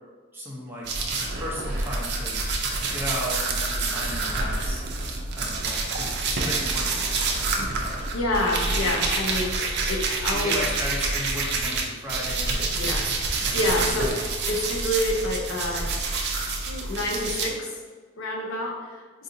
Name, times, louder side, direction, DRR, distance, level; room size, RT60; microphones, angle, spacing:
voice 1, 0.3-0.9 1.4-2.4 2.9-4.8 5.3-7.2 10.3-12.6 13.8-14.2, equal, 10° right, -5 dB, 0.7 m, -34 dB
sound 1, 0.8-11.8 12.1-17.5, right 3 dB, 55° right, 0.5 m, -27 dB
voice 2, 8.0-10.6 12.7-13.1 13.3-14.1 14.5-15.9 16.7-17.7 18.2-19.0, left 1 dB, 75° left, -1 dB, 0.6 m, -28 dB
3.9 x 2.7 x 2.6 m, 1.5 s
head